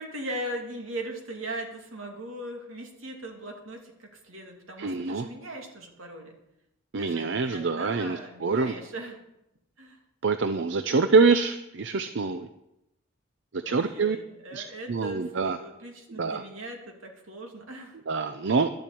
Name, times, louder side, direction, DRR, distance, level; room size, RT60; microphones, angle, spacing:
voice 1, 0.0-6.4 7.0-9.2 9.8-10.0 13.6-18.0, right 1 dB, 80° right, 2 dB, 2.7 m, -39 dB
voice 2, 4.8-5.3 6.9-8.7 10.2-12.5 13.5-14.2 14.5-15.6 16.2-16.4 18.1-18.7, right 4 dB, 60° right, 10 dB, 0.6 m, -25 dB
12.0 x 7.5 x 8.4 m, 0.87 s
head